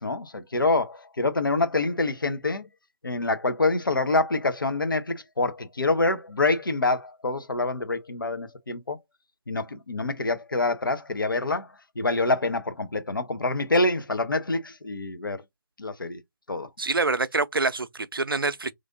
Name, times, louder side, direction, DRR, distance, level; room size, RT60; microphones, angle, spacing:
voice 1, 0.0-2.7 3.0-9.0 9.5-11.7 12.0-15.4 15.8-16.2 16.5-16.7, left 2 dB, 70° left, 0.9 m, -26 dB
voice 2, 16.8-18.7, right 3 dB, 80° right, 0.5 m, -26 dB
3.3 x 2.6 x 3.8 m
figure-of-eight pair, 150°, 12 cm